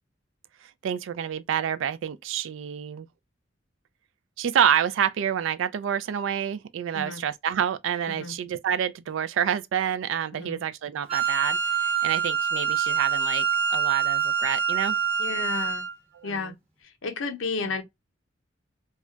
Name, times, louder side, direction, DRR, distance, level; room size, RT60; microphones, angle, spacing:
voice 1, 0.8-3.1 4.4-13.4 13.7-15.0 16.1-16.5, right 9 dB, 75° right, 0.3 m, -28 dB
Wind instrument woodwind instrument, 11.1-15.9, right 7 dB, 30° right, 1.0 m, -25 dB
voice 2, 15.2-15.8 16.2-16.5 17.0-17.8, left 4 dB, 85° left, 0.6 m, -32 dB
2.3 x 2.2 x 3.7 m
head